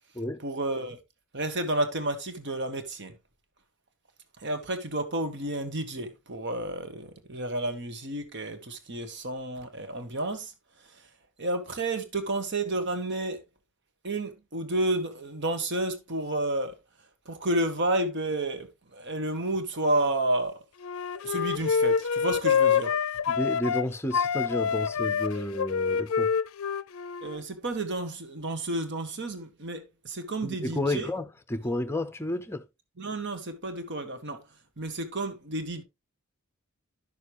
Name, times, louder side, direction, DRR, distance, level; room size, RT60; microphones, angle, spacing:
voice 1, 0.4-1.0 1.3-3.1 4.4-10.5 10.8-11.1 11.4-13.4 14.0-16.7 17.2-20.6 21.1-23.0 27.2-31.1 33.0-34.4 34.8-35.8, right 1 dB, 55° right, 1.4 m, -31 dB
Wind instrument woodwind instrument, 20.8-23.8 24.1-27.4, left 6 dB, 70° left, 0.5 m, -26 dB
voice 2, 23.3-26.3 30.4-32.6, left 1 dB, 10° left, 0.7 m, -31 dB
11.5 x 6.6 x 3.0 m
head